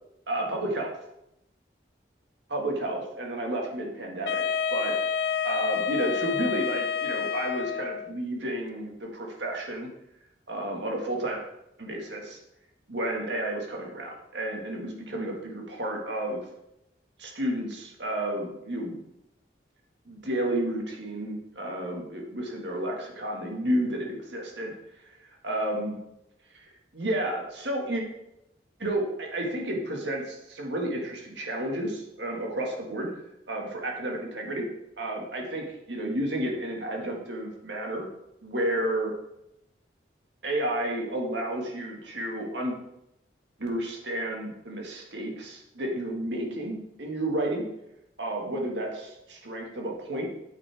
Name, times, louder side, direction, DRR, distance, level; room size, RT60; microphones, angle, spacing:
voice 1, 0.3-0.9 2.5-4.4 4.7-4.9 5.4-9.9 10.5-11.4 11.8-12.4 12.9-16.4 17.2-19.0 20.1-24.7 25.1-25.2 25.4-26.0 26.5-26.7 26.9-28.0 28.8-33.1 33.5-34.7 35.0-38.1 38.4-39.1 40.4-42.8 43.6-47.7 48.2-50.3, right 1 dB, 75° right, 0 dB, 1.8 m, -31 dB
Wind instrument woodwind instrument, 4.2-8.1, left 7 dB, 65° left, 0.4 m, -29 dB
8.3 x 7.6 x 3.5 m, 0.85 s
head